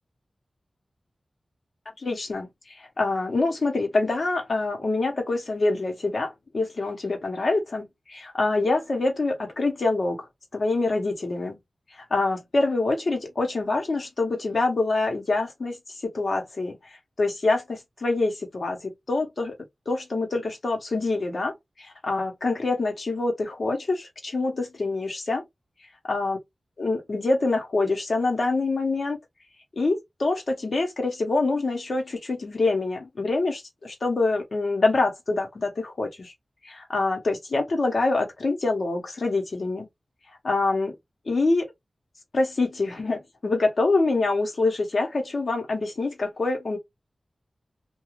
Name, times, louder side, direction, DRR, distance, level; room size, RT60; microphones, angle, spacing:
voice 1, 2.0-10.3 10.5-11.6 12.1-15.8 16.1-19.5 19.9-25.4 26.1-26.4 26.8-29.2 29.8-36.3 36.6-39.9 40.4-40.9 41.3-41.7 42.3-46.8, left 3 dB, 65° left, 0.9 m, -25 dB
2.4 x 2.3 x 3.0 m
wide cardioid pair, 100°, 0 cm